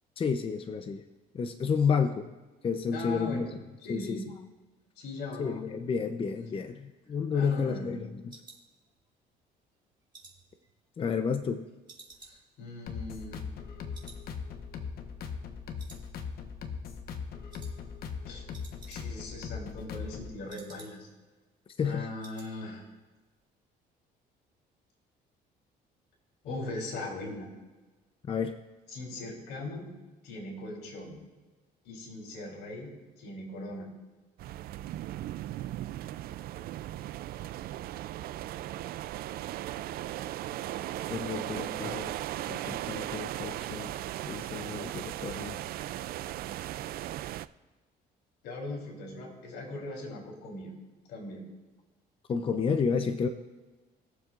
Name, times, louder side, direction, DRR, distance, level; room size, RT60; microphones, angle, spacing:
voice 1, 0.2-1.0 1.3-2.3 2.6-3.6 3.9-4.2 5.4-8.4 11.0-11.6 21.8-22.1 28.3-28.6 41.1-42.1 42.5-43.9 44.3-45.6 52.3-53.3, left 6 dB, 30° left, 7 dB, 0.6 m, -31 dB
voice 2, 2.9-3.5 3.8-4.3 5.0-5.8 7.3-7.9 12.3-13.4 18.2-18.5 18.9-21.1 21.8-22.8 26.4-27.5 28.9-29.9 30.2-31.2 31.8-33.9 48.4-50.7 51.1-51.5, left 2 dB, 85° left, -1 dB, 3.5 m, -39 dB
sound 1, 6.6-9.3 9.7-11.5 11.9-13.7 13.9-14.3 14.5-14.6 15.1-15.5 15.8-16.6 16.8-17.1 17.5-17.8 18.1-18.2 18.4-19.3 19.6-21.2 21.5-21.6 21.9-22.5 22.8-23.1 23.4-23.5, right 3 dB, 25° right, 2.3 m, -55 dB
sound 2, 12.9-20.4, left 6 dB, 65° left, 1.1 m, -40 dB
sound 3, 34.4-47.5, right 14 dB, 65° right, 0.4 m, -37 dB
21.0 x 7.3 x 2.5 m, 1.2 s
cardioid pair, 110°, 17 cm